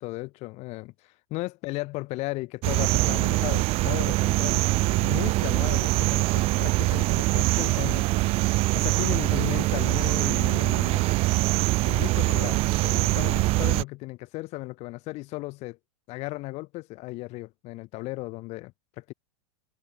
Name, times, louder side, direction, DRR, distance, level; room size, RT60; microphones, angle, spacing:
voice 1, 0.0-8.1 8.7-11.1 11.8-15.8 16.1-19.1, left 21 dB, 35° left, 0.6 m, -35 dB
sound 1, 2.6-13.8, right 21 dB, 35° right, 0.4 m, -23 dB
hypercardioid pair, 130°, 18 cm